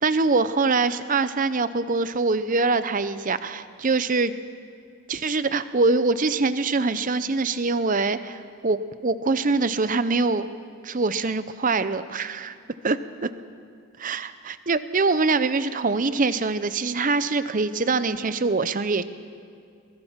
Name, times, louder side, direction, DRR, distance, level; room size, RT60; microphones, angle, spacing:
voice 1, 0.0-4.3 5.1-10.5 10.8-12.5 12.8-13.3 14.0-19.0, right 3 dB, 35° right, 13 dB, 0.6 m, -24 dB
23.5 x 20.5 x 5.8 m, 2.3 s
head